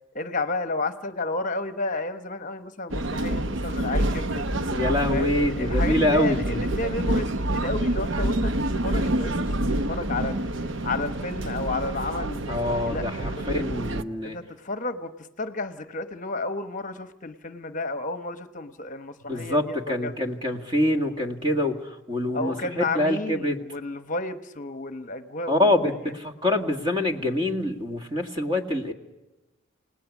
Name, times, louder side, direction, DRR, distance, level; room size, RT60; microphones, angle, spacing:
voice 1, 0.1-4.5 5.1-8.5 8.8-10.5 10.8-13.4 14.2-20.1 22.3-26.1, left 2 dB, 40° left, 10 dB, 1.0 m, -32 dB
sound 1, 2.9-14.0, right 1 dB, 65° right, 0.9 m, -27 dB
voice 2, 4.7-6.6 12.5-14.4 19.3-23.6 25.5-28.9, left 1 dB, 25° right, 4 dB, 1.9 m, -25 dB
29.5 x 18.5 x 7.2 m, 1.1 s
head